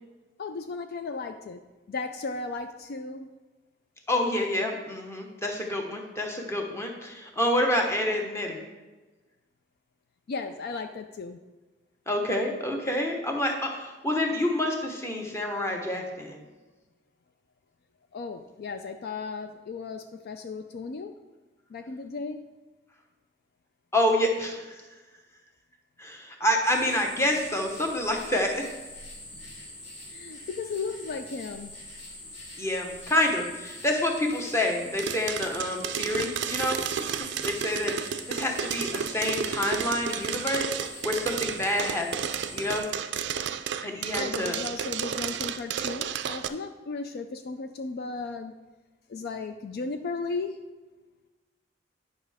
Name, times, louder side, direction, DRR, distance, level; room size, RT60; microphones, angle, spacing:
voice 1, 0.4-3.3 10.3-11.4 18.1-21.2 21.7-22.5 30.1-31.7 44.2-48.5 49.1-50.6, left 4 dB, 55° left, 7 dB, 0.4 m, -35 dB
voice 2, 4.1-8.6 12.1-16.4 23.9-24.6 26.0-28.7 32.6-37.2 37.4-42.9 43.8-44.6, left 1 dB, 15° left, 1 dB, 1.0 m, -28 dB
sound 1, 26.6-42.8, left 1 dB, 85° left, 2.3 m, -44 dB
sound 2, 35.0-46.5, right 8 dB, 65° right, 0.4 m, -32 dB
9.5 x 5.4 x 3.5 m, 1.2 s
head